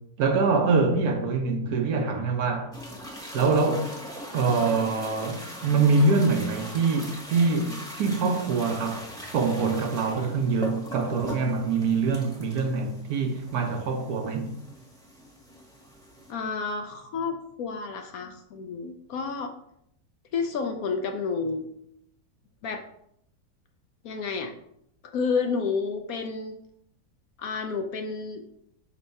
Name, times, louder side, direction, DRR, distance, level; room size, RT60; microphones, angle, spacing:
voice 1, 0.2-2.7 3.3-3.9 4.3-9.0 9.3-14.5, right 4 dB, 65° right, 1.3 m, -24 dB
sound 1, 2.7-16.3, equal, 5° left, 1.0 m, -41 dB
voice 2, 16.3-19.5 20.3-21.7 22.6-22.8 24.0-24.5 25.1-26.6 27.4-28.4, left 5 dB, 65° left, 1.0 m, -30 dB
5.4 x 3.3 x 5.3 m
omnidirectional pair, 1.8 m